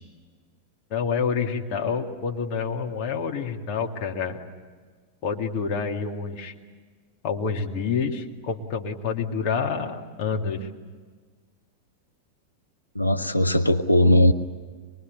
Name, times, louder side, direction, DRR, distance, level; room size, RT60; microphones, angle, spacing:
voice 1, 0.9-4.4 5.2-6.5 7.2-10.7, left 5 dB, 45° left, 2 dB, 2.2 m, -28 dB
voice 2, 12.9-14.3, left 1 dB, 90° left, 5 dB, 0.8 m, -19 dB
24.0 x 22.5 x 9.4 m, 1.5 s
figure-of-eight pair, 90°, 0 cm